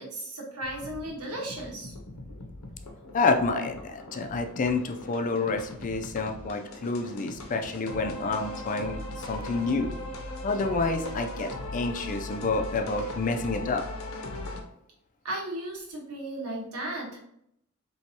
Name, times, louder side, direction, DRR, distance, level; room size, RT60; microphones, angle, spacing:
voice 1, 0.0-1.9 15.2-17.2, right 1 dB, 90° right, -2 dB, 1.3 m, -35 dB
sound 1, 0.6-14.6, left 1 dB, 75° left, 0.7 m, -39 dB
voice 2, 3.1-9.9 10.4-13.8, left 3 dB, 35° left, 5 dB, 0.4 m, -28 dB
4.6 x 3.1 x 2.8 m, 0.73 s
head